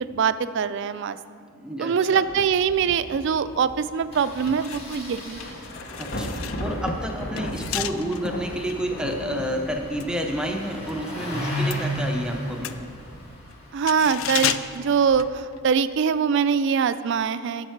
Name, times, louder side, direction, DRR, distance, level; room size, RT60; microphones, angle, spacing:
voice 1, 0.1-1.2 1.8-5.4 13.7-17.7, right 6 dB, 55° right, 13 dB, 0.3 m, -23 dB
voice 2, 1.5-2.2 6.0-12.8, equal, 5° right, 2 dB, 0.6 m, -30 dB
Engine starting, 2.2-2.4 2.7-2.8 3.0-3.2 4.1-15.2, equal, 30° left, 2.5 m, -36 dB
Thunder / Rain, 2.5-13.4, equal, 45° left, 0.8 m, -37 dB
sound 1, 4.5-11.0 11.3-15.9 16.2-16.4, left 11 dB, 70° left, 0.3 m, -34 dB
11.0 x 7.2 x 4.6 m, 2.4 s
head